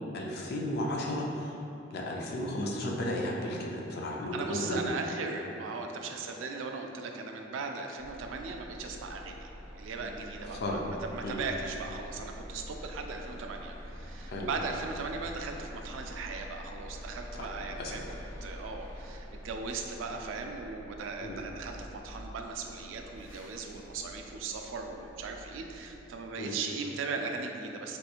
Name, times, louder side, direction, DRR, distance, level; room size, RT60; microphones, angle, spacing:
voice 1, 0.1-1.5 1.9-4.8 10.6-10.8 11.2-11.4 14.3-14.5 17.4-17.5 17.8-18.0 21.2-21.4 26.4-26.5, left 1 dB, 55° left, -1 dB, 0.4 m, -34 dB
voice 2, 4.3-9.5 9.7-18.0 18.4-28.0, right 4 dB, 85° right, 3 dB, 0.3 m, -38 dB
sound 1, 8.0-26.1, equal, 10° right, 1.3 m, -46 dB
3.3 x 2.9 x 2.3 m, 2.9 s
head